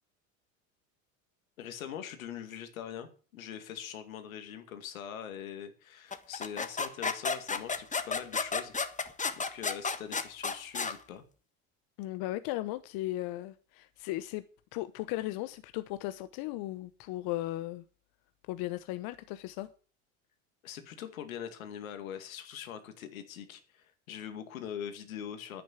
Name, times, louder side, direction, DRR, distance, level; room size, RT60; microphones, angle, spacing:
voice 1, 1.6-8.7 9.3-11.2 20.6-25.6, left 9 dB, 90° left, 2.3 m, -42 dB
sound 1, 6.1-11.0, left 4 dB, 20° left, 1.4 m, -32 dB
voice 2, 12.0-14.4 14.7-17.8 18.5-19.7, left 16 dB, 60° left, 1.0 m, -36 dB
10.5 x 9.4 x 7.2 m
hypercardioid pair, 85°, 40 cm